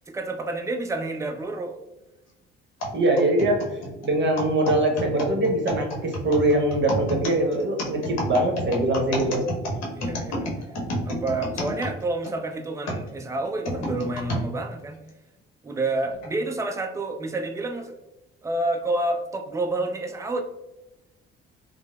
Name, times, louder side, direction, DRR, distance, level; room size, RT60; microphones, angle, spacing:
voice 1, 0.1-1.8 9.9-10.5 11.0-15.0 15.6-18.0 18.4-20.4, right 2 dB, 10° right, 4 dB, 0.4 m, -29 dB
sound 1, 2.8-12.3 12.9-14.5 15.1-15.2 16.0-16.3, equal, 60° left, 0.8 m, -30 dB
voice 2, 2.9-3.6 4.0-9.4, right 1 dB, 40° right, 2 dB, 0.9 m, -22 dB
3.2 x 2.0 x 2.3 m, 0.99 s
hypercardioid pair, 55°, 30 cm